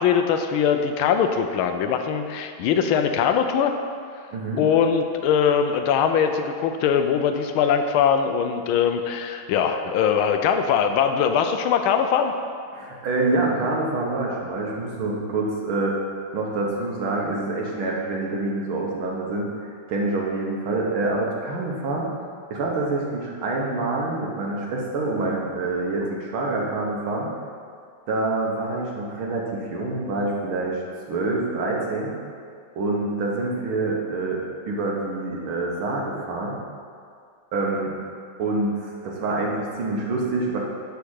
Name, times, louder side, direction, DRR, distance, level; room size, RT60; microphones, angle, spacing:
voice 1, 0.0-3.7 4.6-12.3, left 7 dB, 85° left, 6 dB, 1.5 m, -21 dB
voice 2, 4.3-4.6 12.7-16.0 16.3-19.5 19.9-22.1 22.5-27.3 28.1-30.8 31.1-32.2 32.8-36.6 37.5-37.9 38.4-40.6, right 2 dB, 90° right, -2 dB, 2.0 m, -26 dB
10.0 x 3.5 x 6.4 m, 2.2 s
omnidirectional pair, 2.2 m